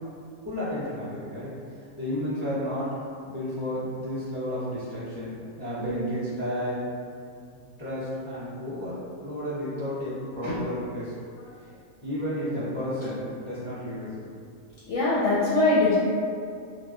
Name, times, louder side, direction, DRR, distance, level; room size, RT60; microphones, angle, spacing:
voice 1, 0.4-1.5 2.0-2.9 3.2-5.3 5.6-6.8 7.8-8.9 9.2-11.1 12.0-14.1, equal, 40° left, -12 dB, 0.4 m, -32 dB
voice 2, 14.9-16.0, left 2 dB, 65° left, -8 dB, 0.8 m, -23 dB
2.9 x 2.0 x 3.5 m, 2.3 s
omnidirectional pair, 1.6 m